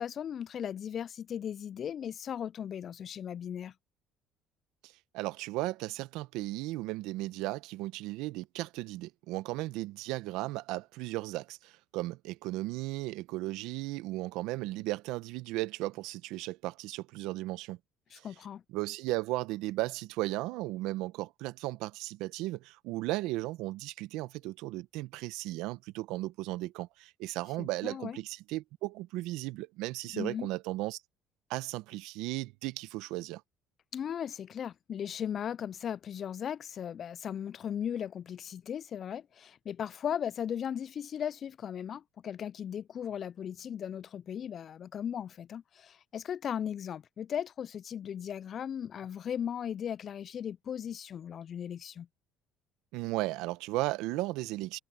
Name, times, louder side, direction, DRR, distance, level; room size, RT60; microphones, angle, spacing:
voice 1, 0.0-3.7 18.1-18.6 27.6-28.2 30.1-30.5 33.9-52.1, left 8 dB, 50° left, 0.3 m, -37 dB
voice 2, 4.8-17.8 18.7-31.0 31.5-33.4 52.9-54.8, right 19 dB, 75° right, 1.0 m, -35 dB
supercardioid pair, 75°, 0 cm